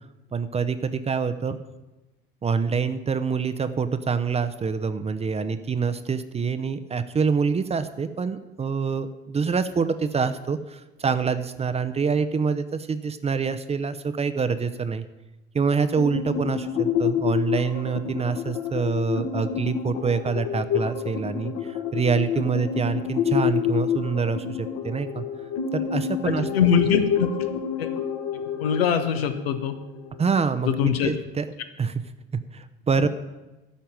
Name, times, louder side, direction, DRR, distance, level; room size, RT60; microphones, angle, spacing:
voice 1, 0.3-1.6 2.4-15.0 15.5-25.2 25.7-26.5 30.2-31.4 31.8-32.0 32.3-33.1, right 5 dB, 20° right, 10 dB, 0.8 m, -26 dB
sound 1, 16.0-30.4, left 8 dB, 50° left, 1.5 m, -28 dB
voice 2, 26.2-27.3 27.8-27.9 28.6-29.7 30.6-31.1, left 7 dB, 70° left, 8 dB, 1.2 m, -22 dB
12.5 x 5.7 x 9.1 m, 1.1 s
figure-of-eight pair, 65°, 31 cm